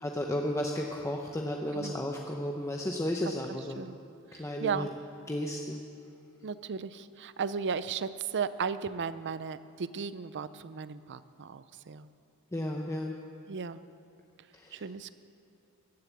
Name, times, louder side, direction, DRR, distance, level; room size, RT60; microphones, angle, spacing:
voice 1, 0.0-3.8 4.4-4.9 5.3-5.8 12.5-13.2 14.5-14.9, left 1 dB, 15° left, 1 dB, 0.8 m, -33 dB
voice 2, 3.2-3.9 4.3-4.9 6.4-12.1 13.5-13.8 14.7-15.1, right 6 dB, 55° right, 14 dB, 0.5 m, -35 dB
14.5 x 10.5 x 8.4 m, 2.5 s
head